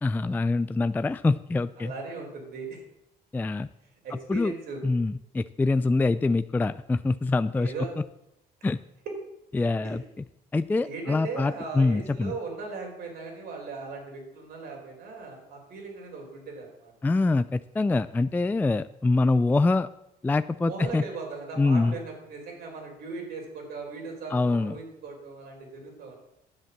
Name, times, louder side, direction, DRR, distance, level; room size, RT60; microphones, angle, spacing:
voice 1, 0.0-1.9 3.3-3.7 4.3-4.5 4.8-7.7 8.6-8.8 9.5-10.0 10.5-12.3 17.0-19.9 20.2-21.0 21.6-21.9 24.3-24.7, left 3 dB, 10° left, 13 dB, 0.3 m, -24 dB
voice 2, 1.8-2.8 4.0-4.8 7.5-7.9 9.8-10.0 10.8-17.1 20.7-26.2, right 4 dB, 65° right, 1 dB, 4.6 m, -38 dB
10.5 x 8.0 x 7.3 m, 0.84 s
cardioid pair, 110°, 17 cm